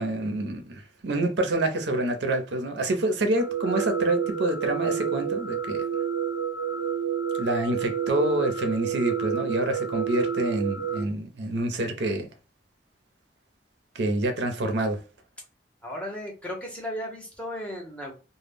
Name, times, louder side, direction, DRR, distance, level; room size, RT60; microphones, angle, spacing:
voice 1, 0.0-5.8 7.4-12.3 13.9-15.0, right 1 dB, 70° right, 0.6 m, -27 dB
sound 1, 3.4-11.0, right 8 dB, 75° left, 0.6 m, -29 dB
voice 2, 15.8-18.1, equal, 5° left, 0.7 m, -35 dB
2.1 x 2.0 x 3.4 m
head